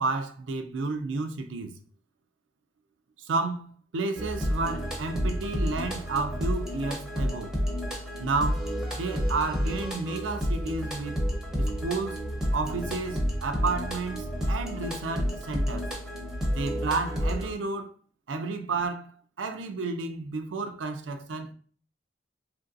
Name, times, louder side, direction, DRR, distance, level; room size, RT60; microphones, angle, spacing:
voice 1, 0.0-1.8 3.2-7.5 8.2-11.2 11.6-12.2 12.5-15.9 16.5-17.9 18.3-21.5, right 3 dB, 85° right, 0.4 m, -31 dB
sound 1, 4.1-17.5, equal, 5° right, 0.7 m, -30 dB
3.0 x 2.6 x 2.5 m
head